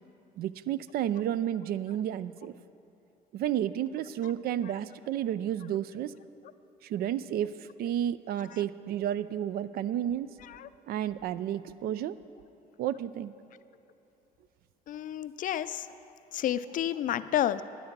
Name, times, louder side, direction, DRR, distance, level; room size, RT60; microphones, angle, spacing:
voice 1, 0.4-2.5 3.3-6.1 6.8-10.3 10.9-12.2 12.8-13.3, right 10 dB, 65° right, 16 dB, 0.4 m, -31 dB
voice 2, 14.9-15.9 16.3-17.6, left 11 dB, 50° left, 14 dB, 0.4 m, -30 dB
11.5 x 10.0 x 5.9 m, 2.8 s
cardioid pair, 110°, 17 cm